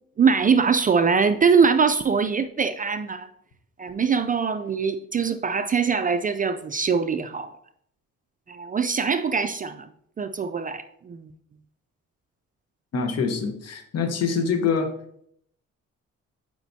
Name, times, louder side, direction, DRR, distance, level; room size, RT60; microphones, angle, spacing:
voice 1, 0.2-3.3 3.8-7.5 8.5-9.9 10.2-11.3, right 5 dB, 30° right, 10 dB, 0.4 m, -22 dB
voice 2, 12.9-14.9, left 5 dB, 55° left, 6 dB, 1.1 m, -25 dB
7.9 x 5.0 x 2.7 m, 0.70 s
cardioid pair, 90°, 30 cm